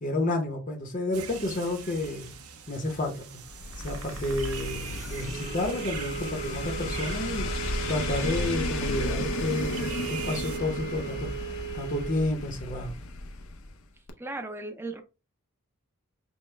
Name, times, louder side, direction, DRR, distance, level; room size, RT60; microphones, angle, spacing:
voice 1, 0.0-2.4 2.7-3.4 3.8-7.5 7.9-11.3 11.7-12.9, left 2 dB, 35° left, 0.8 m, -30 dB
sound 1, 1.1-10.6, right 7 dB, 85° right, 0.7 m, -42 dB
sound 2, 3.5-13.8 14.1-14.2, left 2 dB, 75° left, 0.6 m, -34 dB
sound 3, 5.3-12.3, right 8 dB, 45° right, 1.3 m, -37 dB
voice 2, 14.2-15.0, right 2 dB, 10° right, 0.5 m, -36 dB
5.4 x 2.1 x 3.3 m
head